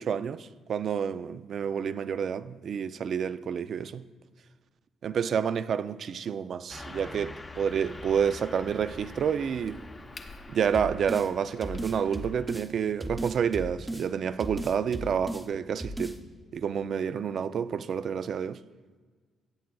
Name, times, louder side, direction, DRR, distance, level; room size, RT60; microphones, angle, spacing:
voice 1, 0.0-4.0 5.0-9.8 10.5-16.2 16.5-18.6, right 7 dB, 60° right, 0.3 m, -29 dB
Car passing by / Truck, 6.7-12.6, left 2 dB, 25° left, 0.8 m, -45 dB
Crack, 7.7-12.7, left 4 dB, 55° left, 1.1 m, -54 dB
sound 1, 10.7-11.3 11.6-12.7 13.0-14.1 14.4-15.5 15.8-16.2, right 1 dB, 10° right, 0.7 m, -36 dB
16.5 x 8.3 x 2.3 m
cardioid pair, 90°, 0 cm